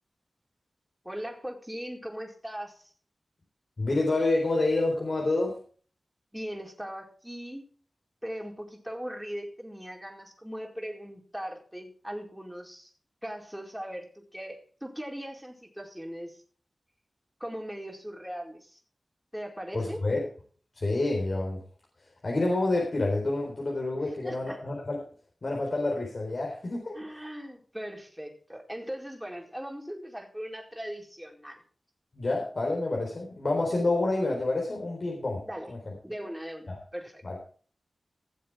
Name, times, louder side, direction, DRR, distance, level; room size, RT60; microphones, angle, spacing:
voice 1, 1.0-2.9 6.3-7.7 8.2-12.9 13.2-16.4 17.4-18.8 19.3-20.0 23.9-24.6 26.9-31.6 35.5-35.7 36.0-37.2, equal, 5° right, 0 dB, 4.5 m, -39 dB
voice 2, 3.8-5.6 19.7-20.3 20.8-21.6 22.2-25.0 25.4-26.9 32.1-35.8 36.7-36.8 37.2-37.4, left 2 dB, 60° left, 0 dB, 3.9 m, -28 dB
17.5 x 7.6 x 4.6 m, 0.43 s
cardioid pair, 45°, 0 cm